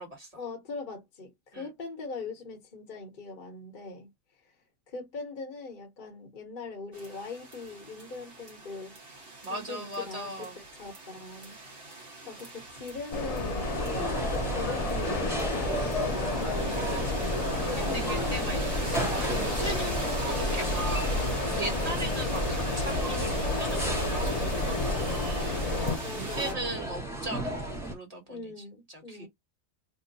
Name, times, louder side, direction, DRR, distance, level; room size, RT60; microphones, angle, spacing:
voice 1, 0.3-4.1 4.9-9.0 9.5-11.6 12.2-16.5 17.3-18.9 19.3-19.9 21.8-22.1 26.0-26.8 28.3-29.3, left 3 dB, 40° left, 1.0 m, -41 dB
sound 1, 6.9-26.5, right 2 dB, 45° right, 1.2 m, -42 dB
voice 2, 9.4-10.5 17.5-18.6 18.9-28.5 28.9-29.3, right 1 dB, 30° right, 1.3 m, -38 dB
sound 2, 13.1-26.0, left 2 dB, 60° left, 0.4 m, -30 dB
sound 3, 13.6-27.9, right 1 dB, ahead, 0.9 m, -35 dB
2.9 x 2.1 x 3.9 m
omnidirectional pair, 1.4 m